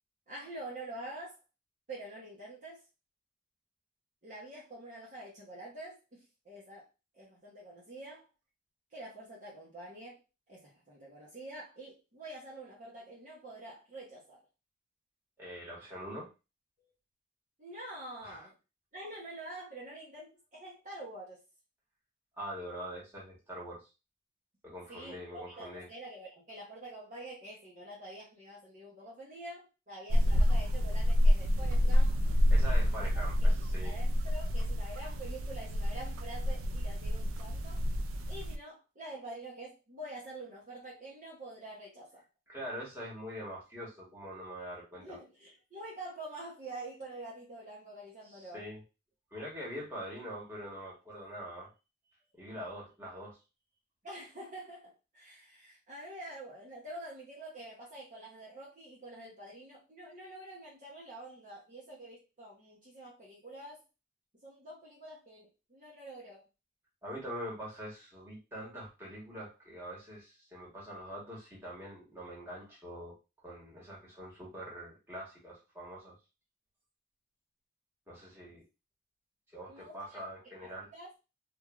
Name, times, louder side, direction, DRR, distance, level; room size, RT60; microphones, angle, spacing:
voice 1, 0.3-1.4 1.9-2.8 4.2-6.9 7.1-8.3 8.9-10.2 10.5-14.4 17.6-18.5 18.9-21.4 24.9-32.2 32.6-33.1 33.4-37.8 38.3-42.2 45.0-48.7 54.0-63.8 64.4-66.4 79.7-80.0 80.6-81.1, right 1 dB, 40° right, -5 dB, 0.8 m, -47 dB
voice 2, 15.4-16.3 18.2-18.4 22.4-23.8 24.6-25.9 32.5-33.9 42.5-45.2 48.3-48.8 49.3-51.7 52.3-53.4 67.0-73.1 73.4-76.2 78.1-78.6 79.5-80.9, equal, 10° right, -5 dB, 1.2 m, -44 dB
sound 1, 30.1-38.6, equal, 90° right, 0.4 m, -28 dB
3.1 x 2.4 x 2.4 m, 0.28 s
head